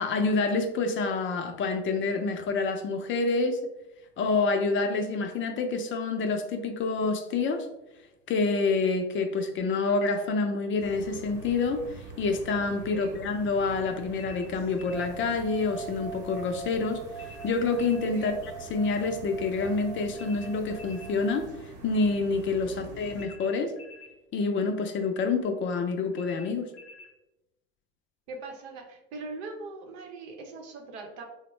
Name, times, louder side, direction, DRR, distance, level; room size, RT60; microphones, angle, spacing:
voice 1, 0.0-3.6 4.2-7.7 8.3-11.8 12.2-17.0 17.4-21.5 21.8-23.7 24.3-26.7, left 4 dB, 40° left, 6 dB, 0.5 m, -27 dB
sound 1, 10.8-23.3, right 3 dB, 45° right, 0.9 m, -45 dB
sound 2, 14.2-15.1 17.1-18.1 20.1-21.2 23.1-24.2 26.1-27.1, left 3 dB, 90° left, 0.7 m, -50 dB
sound 3, 14.9-21.5, right 7 dB, 10° right, 0.6 m, -43 dB
voice 2, 22.6-23.3 28.3-31.3, right 3 dB, 75° right, 2 dB, 0.8 m, -42 dB
3.5 x 2.1 x 3.0 m, 0.94 s
hypercardioid pair, 90°, 33 cm